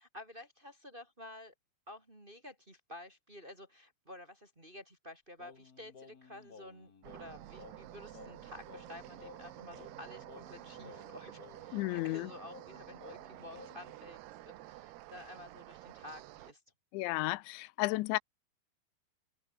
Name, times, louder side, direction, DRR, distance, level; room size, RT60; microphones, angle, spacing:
voice 1, 0.0-1.5 1.9-16.6, left 1 dB, 15° right, 2.5 m, -51 dB
Singing, 5.4-14.0, left 5 dB, 60° left, 0.9 m, -56 dB
sound 1, 7.0-16.5, right 16 dB, 75° right, 2.8 m, -51 dB
voice 2, 11.7-12.3 16.9-18.2, left 21 dB, 85° left, 3.0 m, -33 dB
open air
omnidirectional pair, 5.3 m